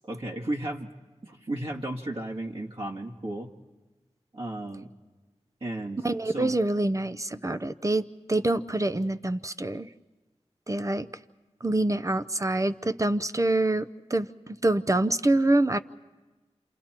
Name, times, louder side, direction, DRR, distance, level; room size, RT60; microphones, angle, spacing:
voice 1, 0.0-0.9 1.2-3.5 4.3-4.9 5.6-6.5, right 1 dB, 50° right, -3 dB, 1.8 m, -34 dB
voice 2, 6.0-9.9 10.7-11.1 11.6-15.8, right 2 dB, 30° right, 13 dB, 0.7 m, -26 dB
28.5 x 27.5 x 4.4 m, 1.2 s
cardioid pair, 45°, 12 cm